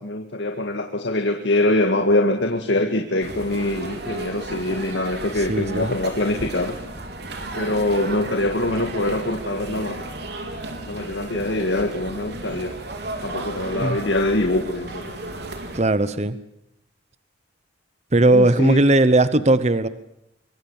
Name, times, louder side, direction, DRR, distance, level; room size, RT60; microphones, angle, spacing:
voice 1, 0.0-6.8 7.5-10.1 10.9-12.8 13.2-15.2 18.3-18.8, left 1 dB, 70° left, 1.9 m, -23 dB
sound 1, 3.2-15.8, right 2 dB, 60° right, 4.0 m, -34 dB
voice 2, 5.4-5.9 13.8-14.0 15.7-16.4 18.1-19.9, right 2 dB, 35° right, 1.0 m, -18 dB
24.5 x 24.0 x 7.3 m
head